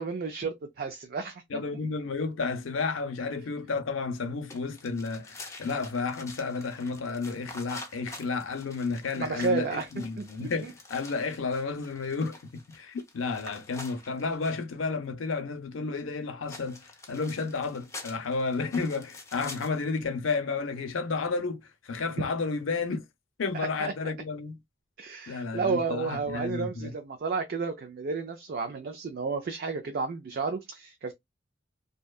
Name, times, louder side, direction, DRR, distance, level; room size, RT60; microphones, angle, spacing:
voice 1, 0.0-1.6 9.2-10.7 23.5-23.9 25.0-31.1, right 4 dB, 50° right, 0.4 m, -32 dB
voice 2, 1.5-12.4 12.7-16.8 17.1-23.0 23.4-24.6 25.3-26.9, left 4 dB, 90° left, 0.5 m, -32 dB
sound 1, 4.5-14.7 16.5-19.9, left 2 dB, 15° left, 0.6 m, -47 dB
2.7 x 2.2 x 2.2 m
head